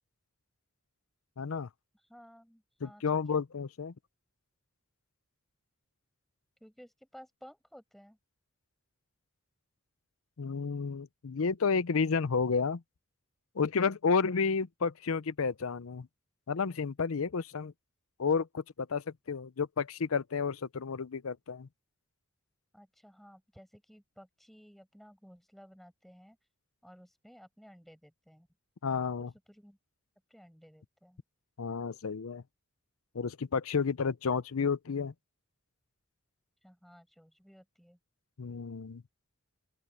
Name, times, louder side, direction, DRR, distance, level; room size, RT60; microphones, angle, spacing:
voice 1, 1.4-1.7 2.8-3.9 10.4-12.8 13.6-16.1 16.5-17.7 18.2-21.7 28.8-29.3 31.6-32.4 33.1-35.1 38.4-39.0, left 5 dB, 85° left, 0.6 m, -31 dB
voice 2, 2.1-3.4 6.6-8.2 22.7-26.4 26.8-28.5 29.2-29.8 30.3-31.2 36.6-38.0, equal, ahead, 6.6 m, -56 dB
open air
head